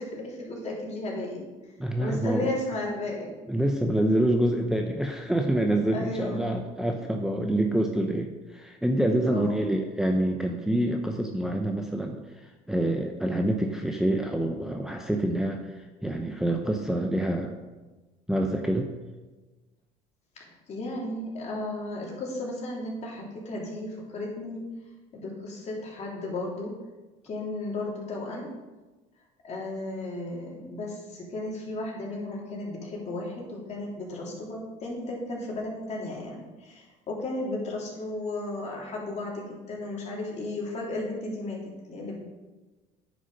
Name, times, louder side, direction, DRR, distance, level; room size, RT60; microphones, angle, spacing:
voice 1, 0.0-1.4 2.0-3.4 5.9-6.6 7.1-7.2 9.2-9.6 20.3-24.6 25.1-26.7 27.2-28.6 29.4-42.1, left 2 dB, 45° left, -3 dB, 3.3 m, -34 dB
voice 2, 1.8-2.5 3.5-17.5 18.3-18.9, right 1 dB, 5° right, 2 dB, 0.8 m, -27 dB
9.6 x 6.3 x 5.7 m, 1.2 s
cardioid pair, 110°, 16 cm